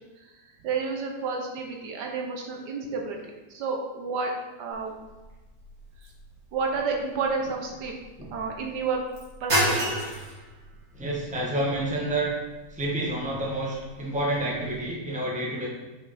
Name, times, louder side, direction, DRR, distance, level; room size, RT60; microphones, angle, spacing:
voice 1, 0.6-3.2 3.5-4.3 4.6-4.9 6.5-7.9 8.3-9.0 9.4-10.0, right 4 dB, 75° right, 1 dB, 1.4 m, -30 dB
sound 1, 4.7-14.8, right 1 dB, 55° right, 2.2 m, -34 dB
voice 2, 10.9-12.3 12.7-15.7, right 1 dB, 5° right, -4 dB, 1.1 m, -29 dB
5.9 x 5.2 x 4.1 m, 1.2 s
omnidirectional pair, 1.9 m